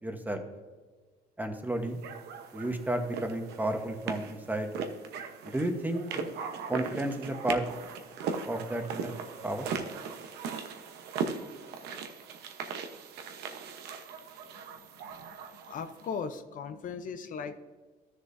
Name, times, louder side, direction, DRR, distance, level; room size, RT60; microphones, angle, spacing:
voice 1, 0.0-0.4 1.4-2.0 2.5-4.7 5.4-6.1 6.7-7.6 8.4-9.1 9.4-9.7, right 1 dB, 10° right, 6 dB, 1.1 m, -32 dB
sound 1, 2.0-16.1, right 6 dB, 75° right, 0.9 m, -39 dB
voice 2, 15.7-17.6, left 6 dB, 50° left, 9 dB, 0.6 m, -38 dB
13.0 x 6.7 x 2.6 m, 1.4 s
cardioid pair, 110°, 17 cm